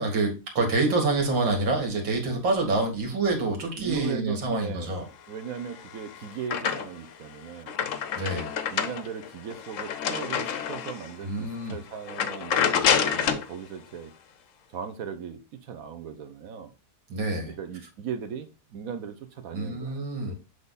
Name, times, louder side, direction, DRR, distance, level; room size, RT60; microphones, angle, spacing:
voice 1, 0.0-5.0 8.2-8.5 11.2-11.8 17.1-17.5 19.5-20.4, right 3 dB, 85° right, 2.6 m, -27 dB
voice 2, 3.8-5.0 5.3-7.8 8.7-14.1 14.7-16.7 17.5-20.3, right 7 dB, 60° right, 1.1 m, -38 dB
sound 1, 5.6-7.1 7.5-11.1 11.6-11.7 12.1-13.5, left 7 dB, 65° left, 0.8 m, -28 dB
7.9 x 3.5 x 4.0 m
omnidirectional pair, 2.0 m